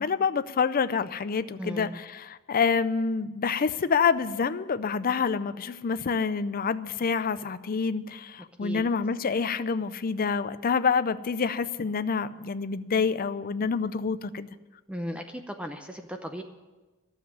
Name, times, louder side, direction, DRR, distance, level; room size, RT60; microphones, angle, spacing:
voice 1, 0.0-14.5, left 5 dB, 40° left, 0.5 m, -27 dB
voice 2, 1.6-2.0 8.6-8.8 14.9-16.4, equal, 5° right, 0.6 m, -36 dB
12.0 x 7.5 x 9.6 m
head